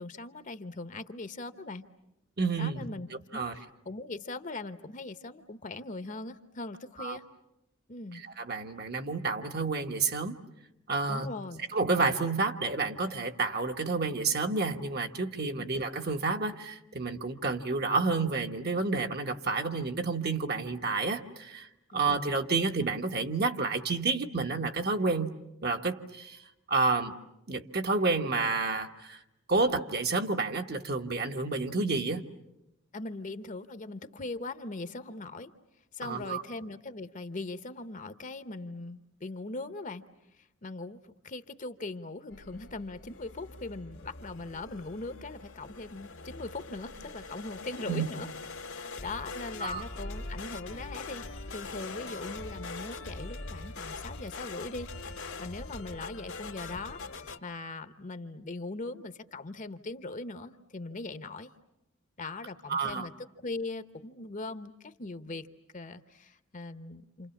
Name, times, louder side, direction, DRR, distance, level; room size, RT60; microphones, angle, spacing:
voice 1, 0.0-1.9 2.6-7.2 7.9-8.2 11.1-11.7 15.6-15.7 21.9-22.0 32.9-35.5 35.9-40.0 40.4-48.3 48.7-61.5 62.2-65.5 65.7-67.3, left 2 dB, 40° left, 11 dB, 1.0 m, -40 dB
voice 2, 2.4-2.9 3.3-3.5 7.0-7.2 8.4-10.4 10.9-11.3 11.7-21.7 21.9-25.3 25.6-26.4 26.7-27.1 27.5-29.2 29.5-32.2 36.0-36.4 47.9-48.0 49.6-49.8 62.7-63.1, right 3 dB, 50° right, 5 dB, 1.4 m, -30 dB
sound 1, 42.3-57.4, left 3 dB, 85° left, 1.9 m, -42 dB
28.5 x 28.5 x 7.2 m, 0.89 s
head